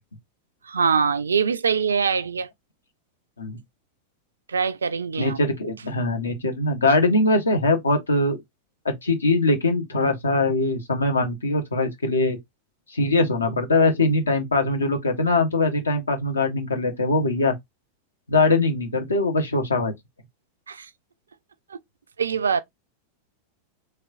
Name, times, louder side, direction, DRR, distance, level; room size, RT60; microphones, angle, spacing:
voice 1, 0.6-2.5 4.5-5.4 20.7-20.9 21.7-21.8 22.2-22.6, right 6 dB, 70° right, 0.3 m, -23 dB
voice 2, 5.2-8.4 8.8-12.4 12.9-17.5 18.3-19.9, left 2 dB, 75° left, 0.9 m, -22 dB
3.3 x 3.1 x 2.4 m
figure-of-eight pair, 90°, 0 cm